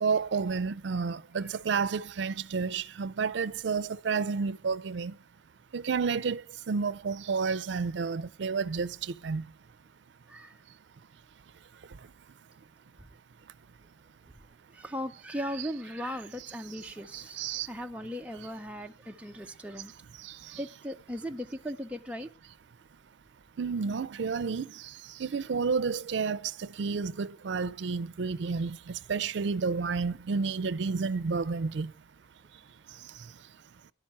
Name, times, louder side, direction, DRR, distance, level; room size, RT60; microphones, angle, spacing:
voice 1, 0.0-5.1 5.7-6.4 6.7-9.5 15.6-15.7 17.1-17.7 20.2-20.6 23.6-24.8 25.2-31.9, right 5 dB, 75° right, 0.5 m, -31 dB
voice 2, 10.3-10.6 14.7-17.4 17.7-19.9 20.5-22.3, equal, 5° right, 0.5 m, -38 dB
11.5 x 5.9 x 8.5 m
head